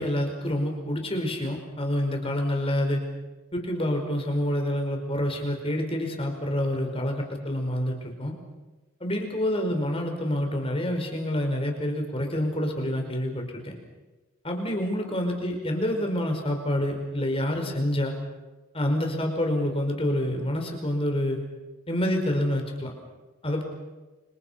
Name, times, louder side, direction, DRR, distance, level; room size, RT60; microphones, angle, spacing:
voice 1, 0.0-3.0 3.5-8.4 9.0-13.7 14.4-18.1 18.7-21.4 21.9-22.9 23.4-23.6, left 1 dB, 25° left, 3 dB, 5.1 m, -27 dB
30.0 x 27.0 x 5.8 m, 1.2 s
head